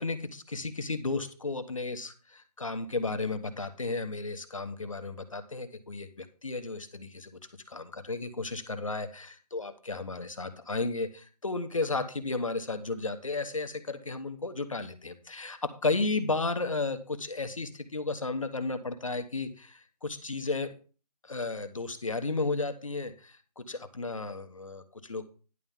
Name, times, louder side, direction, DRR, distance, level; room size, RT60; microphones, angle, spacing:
voice 1, 0.0-7.4 7.7-20.7 21.2-25.3, left 3 dB, 50° left, 8 dB, 1.1 m, -33 dB
10.5 x 3.7 x 7.1 m, 0.37 s
figure-of-eight pair, 175°, 21 cm